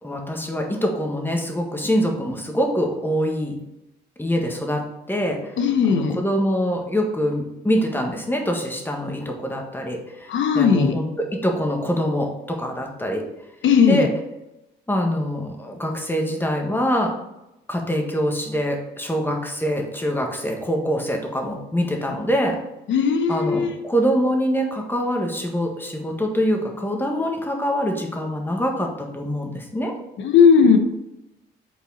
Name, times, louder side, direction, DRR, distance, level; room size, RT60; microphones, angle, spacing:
voice 1, 0.0-3.6 4.2-5.4 5.9-10.3 10.5-13.3 13.8-14.1 14.9-17.1 17.7-22.6 23.3-29.9, equal, 10° left, 1 dB, 1.5 m, -24 dB
voice 2, 5.6-6.2 10.3-11.0 13.6-14.1 22.9-23.7 30.2-30.8, left 6 dB, 70° left, 6 dB, 1.0 m, -17 dB
6.1 x 4.0 x 3.9 m, 0.90 s
cardioid pair, 90°, 20 cm